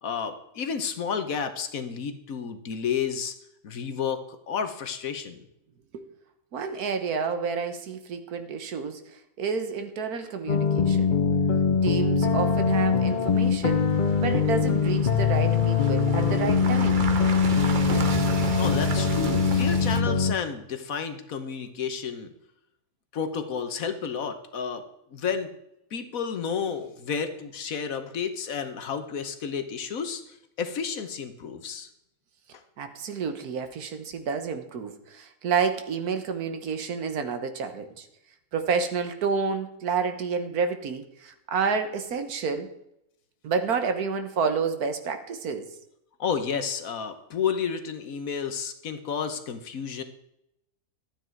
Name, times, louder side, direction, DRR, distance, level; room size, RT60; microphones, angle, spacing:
voice 1, 0.0-3.4 3.6-5.4 18.6-22.3 23.1-25.5 25.9-31.9 46.2-50.0, left 6 dB, 65° left, 9 dB, 1.4 m, -31 dB
voice 2, 6.5-11.1 11.8-13.9 14.2-17.1 32.8-38.1 38.5-42.7 43.4-45.7, right 5 dB, 75° right, 8 dB, 1.7 m, -29 dB
sound 1, 10.5-20.3, left 5 dB, 45° left, 0.6 m, -23 dB
sound 2, 12.2-20.0, right 5 dB, 40° right, 0.9 m, -35 dB
12.5 x 8.8 x 4.6 m, 0.81 s
omnidirectional pair, 1.6 m